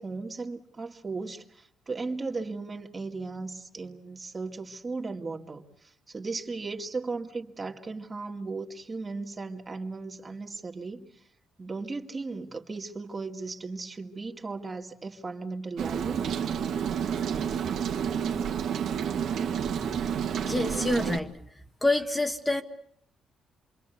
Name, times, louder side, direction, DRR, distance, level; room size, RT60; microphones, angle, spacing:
voice 1, 0.0-11.1 11.6-16.2, right 3 dB, 30° right, 3 dB, 2.4 m, -36 dB
Rain, 15.8-21.2, right 8 dB, 70° right, 2.0 m, -29 dB
voice 2, 20.4-21.3 21.8-22.6, left 2 dB, 15° left, 6 dB, 1.5 m, -26 dB
28.0 x 22.5 x 8.2 m, 0.67 s
cardioid pair, 90°, 0 cm